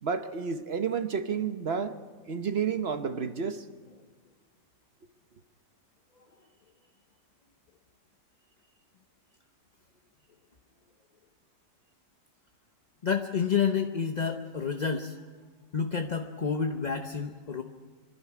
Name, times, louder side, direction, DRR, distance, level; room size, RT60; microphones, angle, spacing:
voice 1, 0.0-2.0 2.3-3.7, right 6 dB, 45° right, 0.9 m, -30 dB
voice 2, 13.0-15.2 15.7-17.6, left 6 dB, 40° left, 0.6 m, -29 dB
26.5 x 12.0 x 9.7 m
omnidirectional pair, 1.8 m